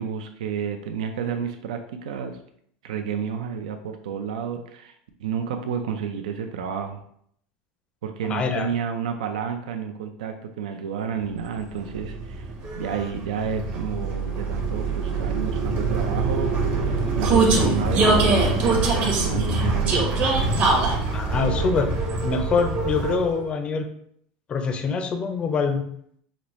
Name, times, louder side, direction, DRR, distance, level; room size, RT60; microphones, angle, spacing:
voice 1, 0.0-2.4 2.8-4.9 5.2-7.0 8.0-20.0, right 7 dB, 85° right, 6 dB, 0.4 m, -30 dB
voice 2, 8.3-8.7 21.1-21.9 22.2-23.9 24.5-25.8, left 5 dB, 25° left, 7 dB, 0.4 m, -24 dB
Vehicle, 11.6-23.4, right 3 dB, 40° right, 0.9 m, -23 dB
5.2 x 2.0 x 3.0 m, 0.67 s
supercardioid pair, 120°, 4 cm